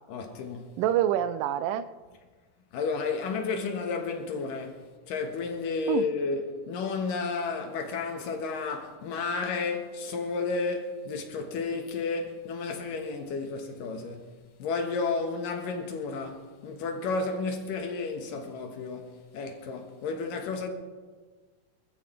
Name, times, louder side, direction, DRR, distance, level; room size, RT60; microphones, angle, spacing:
voice 1, 0.1-0.8 2.7-20.7, left 4 dB, 85° left, 3.1 m, -32 dB
voice 2, 0.8-1.9 5.9-6.1, right 11 dB, 90° right, 2.3 m, -26 dB
24.5 x 14.0 x 3.4 m
omnidirectional pair, 3.8 m